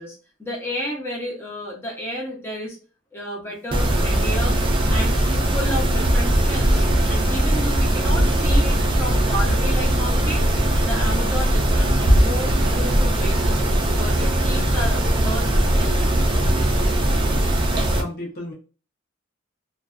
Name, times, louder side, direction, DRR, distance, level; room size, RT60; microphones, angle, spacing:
voice 1, 0.0-2.8 3.1-4.6 4.9-5.2 5.5-6.8 7.1-10.5 10.8-13.6 13.9-15.5 15.7-16.1, equal, 10° left, -3 dB, 0.6 m, -31 dB
Mechanisms, 3.7-18.0, right 1 dB, 25° right, 0.4 m, -19 dB
voice 2, 17.8-18.5, left 1 dB, 50° left, -1 dB, 0.8 m, -34 dB
2.5 x 2.2 x 2.3 m, 0.36 s
head